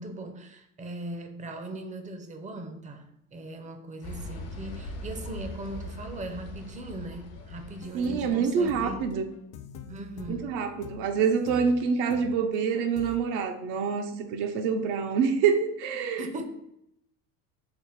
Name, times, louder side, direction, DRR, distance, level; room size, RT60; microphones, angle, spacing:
voice 1, 0.0-9.1 9.9-10.5 16.2-16.4, right 1 dB, 20° right, 6 dB, 0.4 m, -39 dB
sound 1, 4.0-8.8, left 1 dB, 80° left, 1.1 m, -41 dB
sound 2, 7.5-13.2, left 6 dB, 50° left, 0.5 m, -45 dB
voice 2, 7.9-9.3 10.3-16.4, right 6 dB, 75° right, 6 dB, 0.6 m, -26 dB
3.5 x 2.1 x 3.9 m, 0.79 s
supercardioid pair, 90°, 41 cm